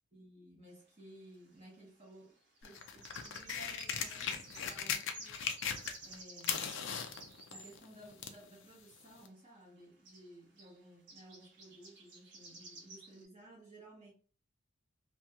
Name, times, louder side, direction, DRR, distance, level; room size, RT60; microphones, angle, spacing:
voice 1, 0.1-5.5 6.0-6.8 7.5-14.1, right 1 dB, 30° right, -3 dB, 0.9 m, -56 dB
sound 1, 0.7-0.8 2.6-7.8 9.5-9.6 9.8-9.9 10.1-10.3 10.6-10.8 11.1-13.3, right 2 dB, 55° right, 1.1 m, -53 dB
sound 2, 2.6-6.2 6.4-8.4 9.3-9.4, left 7 dB, 60° left, 0.4 m, -38 dB
2.9 x 2.7 x 2.3 m, 0.39 s
head